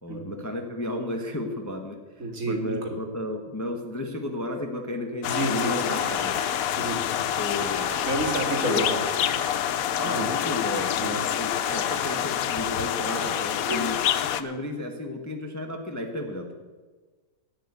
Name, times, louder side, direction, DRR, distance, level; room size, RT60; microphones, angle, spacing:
voice 1, 0.0-6.4 7.3-7.9 8.5-8.8 9.7-16.5, left 1 dB, 10° left, 3 dB, 1.0 m, -33 dB
voice 2, 2.2-3.0 5.2-5.9 6.7-7.1 8.0-9.0 10.0-10.3 11.0-11.2 13.7-13.8, right 1 dB, 55° right, 4 dB, 2.3 m, -29 dB
sound 1, 5.2-14.4, left 10 dB, 70° left, 1.0 m, -27 dB
Vehicle horn car horn honking, 5.9-6.8 7.6-9.7 10.3-11.1 11.5-12.4 13.0-13.6, right 6 dB, 80° right, 1.3 m, -41 dB
11.5 x 8.8 x 8.2 m, 1.3 s
omnidirectional pair, 1.7 m